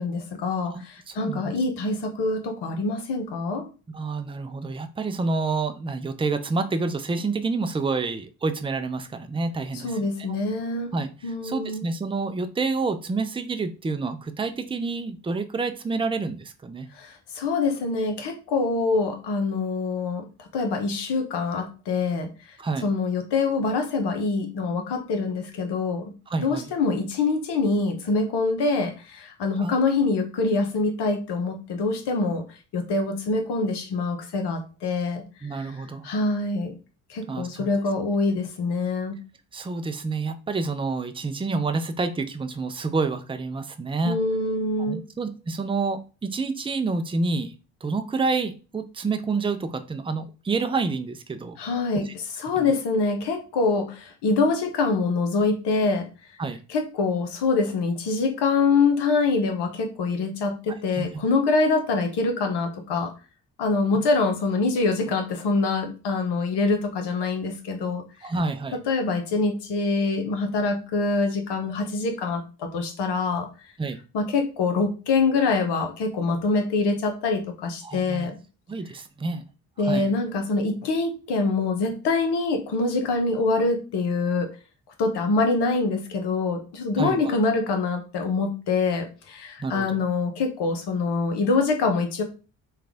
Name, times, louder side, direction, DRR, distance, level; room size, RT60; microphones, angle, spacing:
voice 1, 0.0-3.7 9.8-10.9 11.2-11.8 17.0-20.3 20.5-22.3 22.8-32.4 32.7-35.3 35.5-35.7 36.0-36.7 37.1-39.2 44.0-45.0 51.6-52.1 52.4-56.1 56.7-63.1 63.6-68.0 68.7-73.5 74.1-78.4 79.8-84.5 85.0-92.2, left 3 dB, 65° left, 5 dB, 1.0 m, -25 dB
voice 2, 0.7-1.5 3.9-10.0 10.9-16.9 22.6-22.9 26.3-26.7 29.6-29.7 35.4-36.1 37.3-37.7 39.5-44.2 44.8-47.5 47.8-51.6 52.0-52.1 52.6-52.7 56.4-56.6 60.9-61.1 68.2-68.8 73.8-74.0 77.8-78.3 78.7-79.4 79.8-80.1 87.0-87.3 89.6-90.0, right 4 dB, 10° right, 8 dB, 0.5 m, -28 dB
3.4 x 2.4 x 3.4 m, 0.33 s
hypercardioid pair, 45°, 43 cm